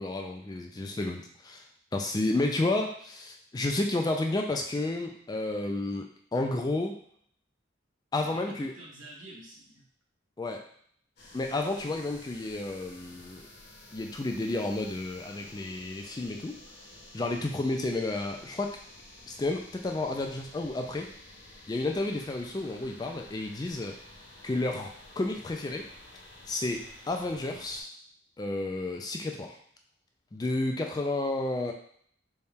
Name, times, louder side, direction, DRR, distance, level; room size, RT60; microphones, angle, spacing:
voice 1, 0.0-1.7 1.9-7.0 8.1-8.7 10.4-10.6 11.3-13.4 13.9-16.6 17.1-18.8 19.3-21.1 21.7-24.0 24.4-25.9 26.5-27.9 28.4-29.6 30.3-31.7, left 2 dB, 20° left, 2 dB, 0.3 m, -31 dB
voice 2, 8.1-9.8 20.9-21.1, right 2 dB, 85° right, -3 dB, 1.2 m, -48 dB
sound 1, 11.2-27.8, left 1 dB, 55° left, 0.9 m, -51 dB
4.1 x 2.3 x 3.5 m, 0.63 s
head